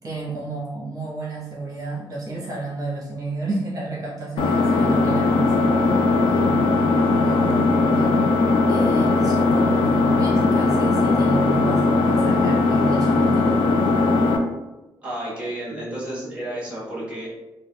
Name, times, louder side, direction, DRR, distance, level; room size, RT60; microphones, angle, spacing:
voice 1, 0.0-8.1 8.7-13.6, right 3 dB, 45° right, -5 dB, 0.8 m, -31 dB
Engine, 4.4-14.4, left 3 dB, 85° left, 0.4 m, -19 dB
voice 2, 15.0-17.3, right 1 dB, 15° right, -6 dB, 1.2 m, -31 dB
3.3 x 2.2 x 2.2 m, 1.1 s
cardioid pair, 125°, 9 cm